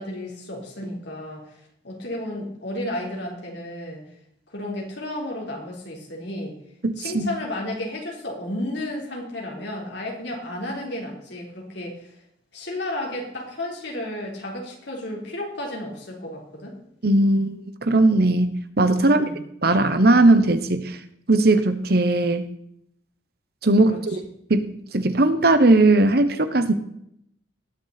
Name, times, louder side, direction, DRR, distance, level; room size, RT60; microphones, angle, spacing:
voice 1, 0.0-1.6 1.8-4.0 4.5-6.6 7.0-12.1 12.5-16.8 19.0-19.4 23.9-24.0, left 1 dB, 65° left, -1 dB, 3.7 m, -32 dB
voice 2, 6.8-7.3 17.0-19.2 19.6-21.0 21.3-22.4 23.6-24.2 24.5-26.7, right 2 dB, 55° right, 10 dB, 1.1 m, -18 dB
19.5 x 7.0 x 4.2 m, 0.73 s
head